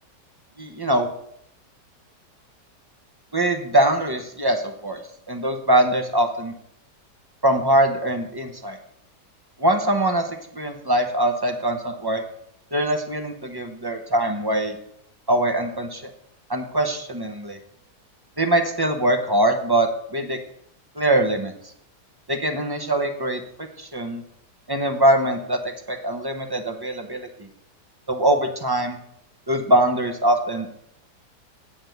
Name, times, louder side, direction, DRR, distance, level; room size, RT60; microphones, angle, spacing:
voice 1, 0.6-1.1 3.3-5.0 5.3-6.5 7.4-8.8 9.6-12.2 12.7-14.7 15.3-16.1 16.5-17.6 18.4-20.4 21.0-21.5 22.3-23.4 23.8-24.2 24.7-25.6 25.9-27.3 28.1-29.0 29.5-30.7, right 1 dB, 30° right, 6 dB, 0.4 m, -22 dB
8.8 x 5.2 x 7.8 m, 0.72 s
omnidirectional pair, 1.9 m